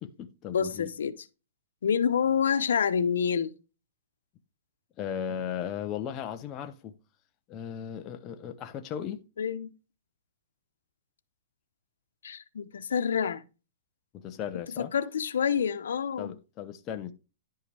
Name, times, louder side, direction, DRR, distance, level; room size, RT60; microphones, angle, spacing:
voice 1, 0.0-0.9 5.0-6.9 7.5-9.2 14.1-14.9 16.2-17.1, left 9 dB, 20° left, 0.8 m, -36 dB
voice 2, 0.5-1.1 1.8-3.5 9.4-9.7 12.2-13.4 14.8-16.3, left 7 dB, 85° left, 0.9 m, -27 dB
11.0 x 5.6 x 3.4 m
hypercardioid pair, 165°, 0 cm